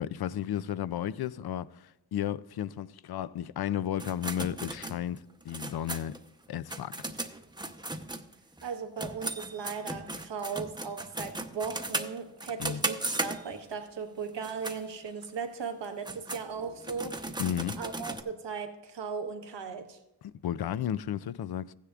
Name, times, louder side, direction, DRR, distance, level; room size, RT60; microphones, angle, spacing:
voice 1, 0.0-6.2 6.5-6.9 12.6-12.8 17.4-17.8 20.2-21.7, left 10 dB, 60° left, 0.5 m, -33 dB
sound 1, 4.0-8.7 9.0-13.7 14.3-14.8 15.2-15.3 15.8-18.2, right 2 dB, 10° right, 0.8 m, -37 dB
voice 2, 8.6-17.4 17.8-20.0, right 5 dB, 75° right, 1.3 m, -37 dB
15.0 x 10.0 x 2.4 m
cardioid pair, 50°, 43 cm